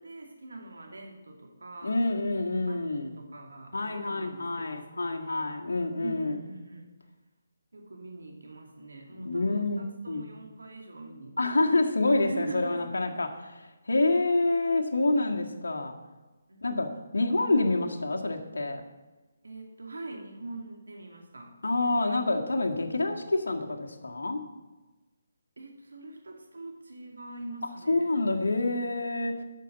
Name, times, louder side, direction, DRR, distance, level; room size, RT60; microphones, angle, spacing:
voice 1, 0.0-2.0 2.7-5.5 6.0-6.9 7.7-11.7 12.2-13.1 16.5-16.6 19.4-21.5 25.6-28.1 28.6-28.9, right 2 dB, 80° right, 3 dB, 2.4 m, -43 dB
voice 2, 1.8-3.1 3.7-6.4 9.3-10.3 11.4-15.9 16.6-18.8 21.6-24.4 27.9-29.4, left 2 dB, 80° left, 3 dB, 1.7 m, -27 dB
9.1 x 6.8 x 8.0 m, 1.2 s
figure-of-eight pair, 150°, 0 cm